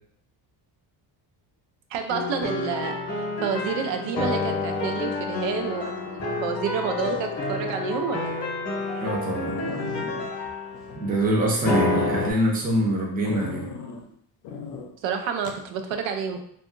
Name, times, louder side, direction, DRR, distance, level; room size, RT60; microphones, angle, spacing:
voice 1, 1.9-8.4 15.0-16.4, right 6 dB, 85° right, 5 dB, 0.5 m, -29 dB
sound 1, 2.1-12.3, left 3 dB, 35° left, 0.8 m, -29 dB
sound 2, 5.4-5.8 7.0-7.7 8.2-8.3 8.8-8.9 9.1-9.2 9.4-11.5 11.9-12.3 13.2-14.0 14.4-14.9 15.4-15.6, left 5 dB, 60° left, 0.5 m, -36 dB
voice 2, 9.0-9.6 11.0-13.7, right 1 dB, 20° right, -2 dB, 0.5 m, -24 dB
2.7 x 2.4 x 2.5 m, 0.66 s
cardioid pair, 165°, 44 cm